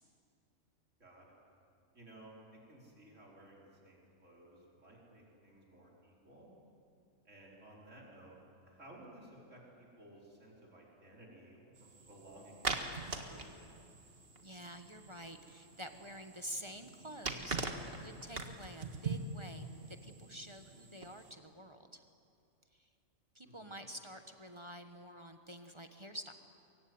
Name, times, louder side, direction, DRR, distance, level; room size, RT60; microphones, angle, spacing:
voice 1, 1.0-1.3 1.9-6.5 7.2-8.4 8.6-13.5 23.4-23.8, right 1 dB, 65° right, -3 dB, 5.1 m, -57 dB
sound 1, 11.8-21.3, right 3 dB, 45° right, 1.9 m, -43 dB
voice 2, 14.4-17.6 18.0-22.0 22.7-22.9 23.3-26.3, equal, 20° right, 6 dB, 1.3 m, -48 dB
23.5 x 23.0 x 9.5 m, 2.5 s
omnidirectional pair, 1.4 m